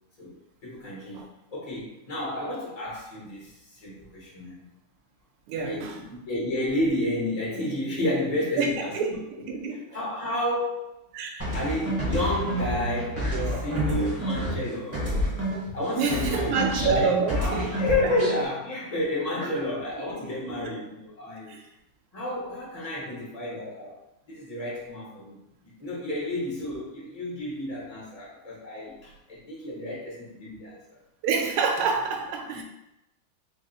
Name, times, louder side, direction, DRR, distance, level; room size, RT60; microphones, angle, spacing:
voice 1, 0.6-1.2 1.5-4.6 5.6-9.6 9.9-10.8 11.5-15.1 15.7-21.6 22.1-24.0 24.3-25.4 25.6-31.0, left 1 dB, 75° left, -6 dB, 0.3 m, -31 dB
voice 2, 5.5-6.0 8.6-9.1 9.5-9.8 11.1-11.5 16.0-17.7 20.5-20.6 21.5-21.6 31.2-32.6, right 5 dB, 80° right, 2 dB, 1.5 m, -27 dB
sound 1, 11.4-15.8 16.1-18.4, equal, 20° right, 0.3 m, -29 dB
4.0 x 2.0 x 3.8 m, 0.90 s
omnidirectional pair, 2.4 m